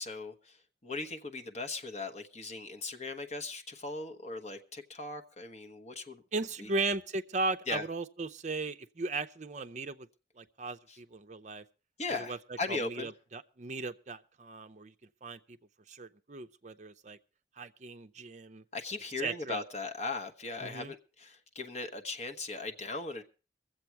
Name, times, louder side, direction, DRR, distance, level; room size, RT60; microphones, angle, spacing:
voice 1, 0.0-6.2 6.6-6.7 7.7-7.8 10.9-11.0 12.0-13.1 18.7-23.2, left 3 dB, 40° left, 1.1 m, -38 dB
voice 2, 6.3-10.1 10.4-11.6 12.1-12.4 12.7-14.9 15.2-15.6 15.9-17.2 17.6-18.6 19.2-19.6 20.6-20.9, right 3 dB, 40° right, 0.6 m, -37 dB
22.5 x 7.8 x 4.5 m
head